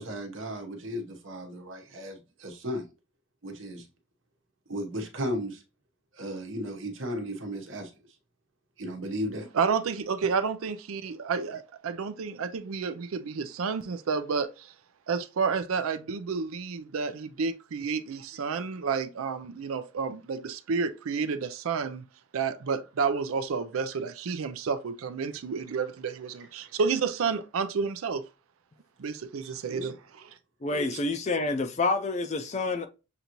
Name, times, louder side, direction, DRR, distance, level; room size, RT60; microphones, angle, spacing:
voice 1, 0.0-2.9 3.4-3.9 4.7-5.6 6.1-7.9 8.8-9.5 29.4-29.9 30.7-31.0, equal, 65° right, 1.0 m, -35 dB
voice 2, 9.5-14.7 15.1-22.0 22.3-28.3 29.0-30.4, right 5 dB, 90° right, 0.4 m, -30 dB
voice 3, 30.6-32.9, left 3 dB, 35° left, 0.4 m, -28 dB
6.7 x 2.6 x 2.9 m
head